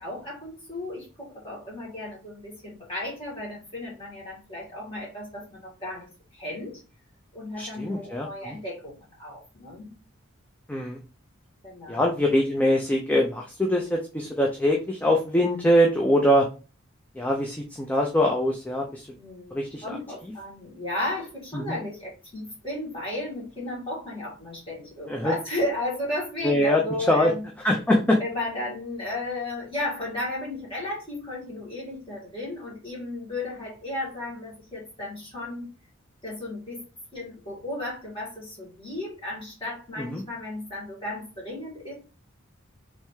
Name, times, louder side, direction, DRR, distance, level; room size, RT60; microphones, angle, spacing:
voice 1, 0.0-6.1 6.3-6.8 7.3-9.9 11.6-12.0 19.1-27.5 28.2-35.7 36.2-36.8 37.1-41.9, left 1 dB, 25° left, -5 dB, 2.2 m, -34 dB
voice 2, 7.6-8.6 10.7-11.0 11.9-16.5 17.2-19.1 19.5-19.8 21.5-21.8 25.1-25.3 26.4-26.8 27.1-27.3 27.6-28.2 40.0-40.2, equal, 5° left, 0 dB, 0.4 m, -23 dB
3.4 x 3.1 x 3.1 m, 0.34 s
head